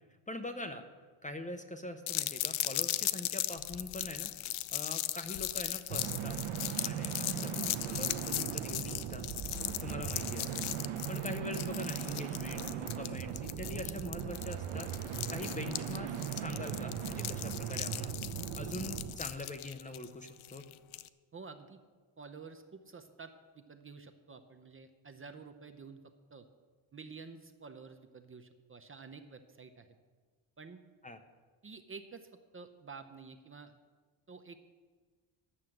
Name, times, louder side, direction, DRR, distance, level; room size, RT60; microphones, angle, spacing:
voice 1, 0.3-0.9 1.2-4.3 4.7-6.4 6.8-9.3 9.8-10.6 11.1-14.9 15.3-18.1 18.6-20.7 31.0-31.2, left 2 dB, 15° left, 7 dB, 0.7 m, -43 dB
sound 1, 2.1-21.1, left 15 dB, 75° left, 0.6 m, -38 dB
sound 2, 5.9-19.2, right 9 dB, 80° right, 0.9 m, -38 dB
voice 2, 21.3-21.8 22.2-26.0 26.3-26.5 26.9-29.9 30.6-30.8 31.6-33.7 34.3-34.6, right 4 dB, 25° right, 7 dB, 0.6 m, -50 dB
11.0 x 7.2 x 7.7 m, 1.5 s
cardioid pair, 130°, 49 cm